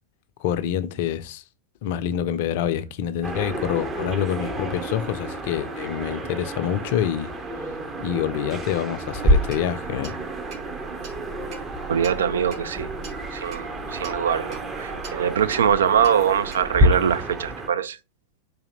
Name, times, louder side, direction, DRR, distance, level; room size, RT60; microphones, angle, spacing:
voice 1, 0.4-1.4 1.8-7.3 8.0-10.1, left 10 dB, 50° left, 0.4 m, -26 dB
sound 1, 3.2-17.7, right 2 dB, 20° right, 0.7 m, -34 dB
Clock, 9.1-16.8, equal, 40° right, 2.1 m, -28 dB
voice 2, 11.9-12.9 13.3-18.0, right 8 dB, 65° right, 0.3 m, -23 dB
4.1 x 2.8 x 3.8 m
figure-of-eight pair, 90°, 0 cm